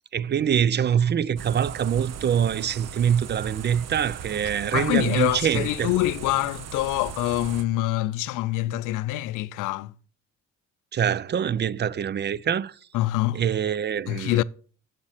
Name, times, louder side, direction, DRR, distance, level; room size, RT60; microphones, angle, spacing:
voice 1, 0.1-5.9 10.9-12.7 13.3-14.4, right 8 dB, 35° right, 0.4 m, -24 dB
sound 1, 1.4-7.6, right 8 dB, 60° right, 0.8 m, -38 dB
voice 2, 4.7-9.9 12.9-13.4 14.1-14.4, left 16 dB, 90° left, 0.5 m, -25 dB
7.6 x 7.3 x 6.5 m
cardioid pair, 90°, 30 cm